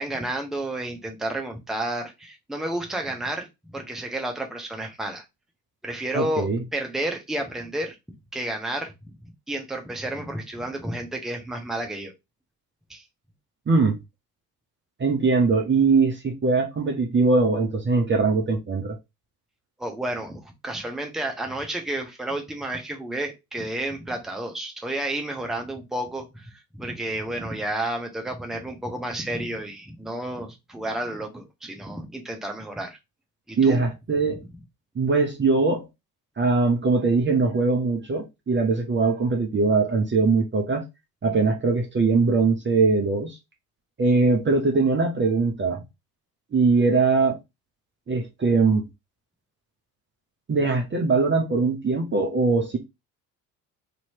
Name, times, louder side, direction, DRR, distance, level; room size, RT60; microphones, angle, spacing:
voice 1, 0.0-3.5 3.7-5.2 5.8-7.9 8.3-8.9 9.5-12.1 12.9-13.0 19.8-33.0 33.5-33.8 34.3-34.5, right 1 dB, ahead, 0.9 m, -31 dB
voice 2, 6.1-6.6 13.7-14.0 15.0-19.0 33.6-34.4 35.0-35.9 36.4-40.8 41.2-43.4 44.0-45.8 46.5-47.4 48.1-48.8 50.5-52.8, right 4 dB, 25° right, 0.8 m, -21 dB
3.0 x 2.9 x 2.8 m
hypercardioid pair, 55°, 46 cm